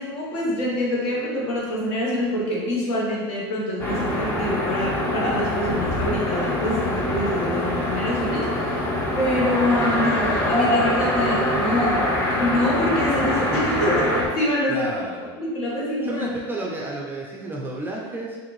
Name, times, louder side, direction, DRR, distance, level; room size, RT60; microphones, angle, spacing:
voice 1, 0.0-8.8 9.1-14.8 15.4-16.2, left 1 dB, 50° left, -5 dB, 1.2 m, -25 dB
sound 1, 3.8-14.3, left 1 dB, 15° left, 0.8 m, -24 dB
voice 2, 14.7-15.2 16.0-18.4, right 2 dB, 15° right, -3 dB, 0.5 m, -31 dB
3.6 x 2.5 x 3.1 m, 1.5 s
supercardioid pair, 105°, 13 cm